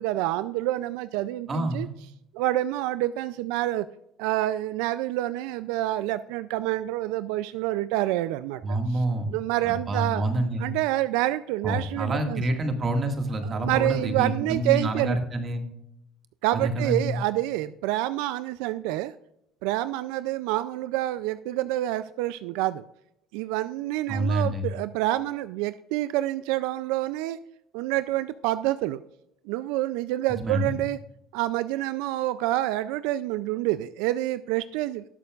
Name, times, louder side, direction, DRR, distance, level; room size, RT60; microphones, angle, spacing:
voice 1, 0.0-1.9 2.3-3.9 4.2-9.0 9.3-10.2 10.6-12.4 13.4-15.2 16.4-19.1 19.6-22.8 23.3-27.4 27.7-29.0 29.5-31.0 31.3-35.0, right 15 dB, 80° right, 14 dB, 0.3 m, -27 dB
voice 2, 1.5-1.9 8.6-9.4 9.6-10.7 11.6-15.6 16.5-17.2 24.1-24.7 30.4-30.8, right 1 dB, 30° right, 5 dB, 1.9 m, -27 dB
19.0 x 6.8 x 2.4 m, 0.81 s
cardioid pair, 120°, 0 cm